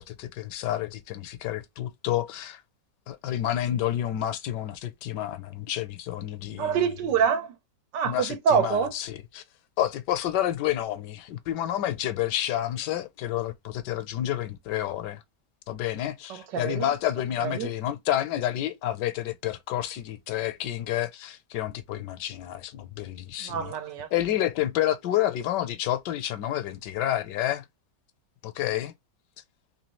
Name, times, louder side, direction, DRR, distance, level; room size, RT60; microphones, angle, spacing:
voice 1, 0.0-2.6 3.1-6.8 8.0-9.4 9.8-15.2 15.7-23.7 24.1-27.6 28.4-28.9, left 12 dB, 75° left, 1.2 m, -29 dB
voice 2, 6.6-7.5 7.9-8.9 16.3-16.9 17.4-17.7 23.4-24.1, right 7 dB, 85° right, 1.5 m, -26 dB
4.0 x 3.1 x 3.0 m
omnidirectional pair, 1.9 m